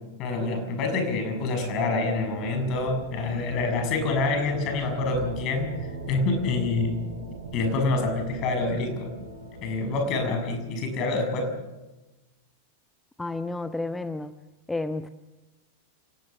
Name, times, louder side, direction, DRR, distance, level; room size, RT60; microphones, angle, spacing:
voice 1, 0.2-7.0 7.5-9.1 9.6-11.5, left 3 dB, 40° left, 6 dB, 6.6 m, -27 dB
sound 1, 0.9-11.5, right 2 dB, 85° right, 7.9 m, -41 dB
voice 2, 13.2-14.3 14.7-15.1, left 2 dB, 10° left, 12 dB, 0.8 m, -31 dB
28.5 x 19.0 x 7.1 m, 1.0 s
figure-of-eight pair, 90°, 0 cm